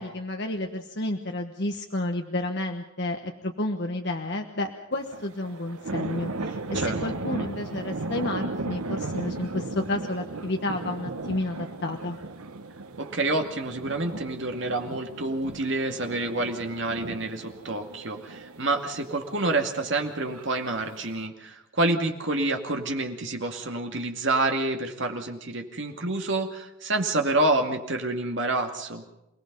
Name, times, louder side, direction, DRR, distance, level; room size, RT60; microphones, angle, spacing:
voice 1, 0.0-12.2, left 1 dB, 50° left, 4 dB, 1.2 m, -31 dB
sound 1, 4.9-21.3, right 2 dB, 90° right, 1.2 m, -36 dB
voice 2, 13.0-29.0, right 2 dB, 55° right, 4 dB, 2.3 m, -28 dB
28.5 x 18.5 x 5.5 m, 0.88 s
head